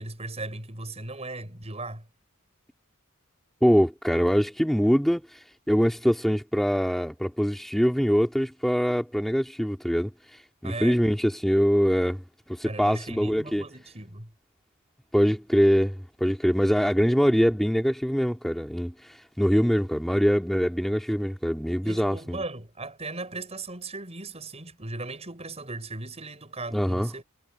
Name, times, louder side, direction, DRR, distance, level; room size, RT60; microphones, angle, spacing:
voice 1, 0.0-2.1 10.6-11.0 12.6-14.3 21.8-27.2, right 2 dB, 30° right, 6.3 m, -37 dB
voice 2, 3.6-12.2 12.5-13.6 15.1-22.4 26.7-27.1, equal, ahead, 2.4 m, -24 dB
head